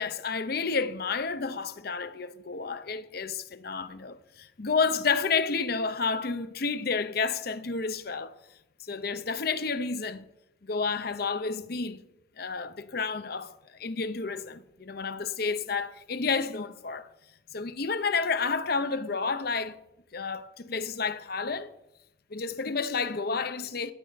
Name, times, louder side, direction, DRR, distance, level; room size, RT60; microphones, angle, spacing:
voice 1, 0.0-8.4 8.8-10.2 10.6-12.0 12.4-17.1 17.5-19.8 20.1-21.7 22.3-23.9, left 4 dB, 50° left, 0.7 m, -30 dB
13.5 x 4.9 x 8.9 m
head